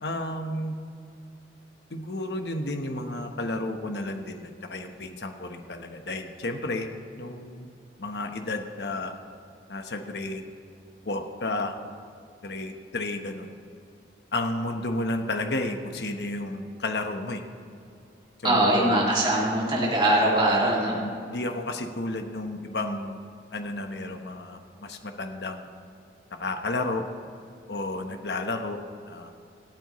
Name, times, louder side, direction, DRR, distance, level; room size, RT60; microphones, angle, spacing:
voice 1, 0.0-0.8 1.9-6.9 7.2-7.7 8.0-9.1 9.7-10.4 11.0-11.7 12.4-13.5 14.3-17.4 18.4-19.1 20.9-23.2 23.5-25.6 26.4-27.0 27.7-28.8 29.1-29.3, left 2 dB, 70° left, 5 dB, 1.2 m, -32 dB
voice 2, 18.4-21.0, right 1 dB, 25° right, -4 dB, 2.5 m, -22 dB
26.5 x 8.8 x 3.1 m, 2.6 s
head